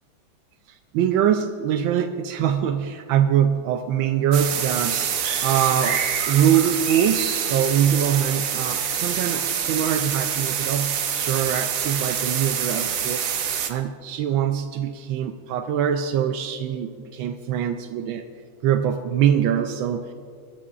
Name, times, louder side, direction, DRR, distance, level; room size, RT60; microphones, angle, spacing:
voice 1, 0.7-5.0 5.4-13.2 13.7-18.3 18.6-20.1, right 9 dB, 85° right, 7 dB, 1.4 m, -23 dB
sound 1, 4.3-13.7, right 8 dB, 60° right, 0.9 m, -26 dB
24.5 x 12.0 x 2.5 m, 2.2 s
omnidirectional pair, 2.1 m